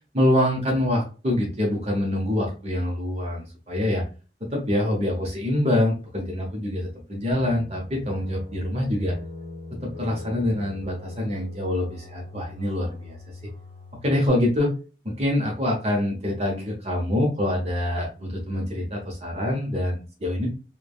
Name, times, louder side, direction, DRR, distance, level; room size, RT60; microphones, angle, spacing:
voice 1, 0.1-4.0 4.5-9.1 9.8-13.2 14.0-14.7 15.2-20.5, left 1 dB, 35° right, -1 dB, 0.7 m, -25 dB
sound 1, 7.3-14.3, left 2 dB, 75° right, 1.2 m, -42 dB
3.2 x 2.1 x 2.2 m, 0.34 s
head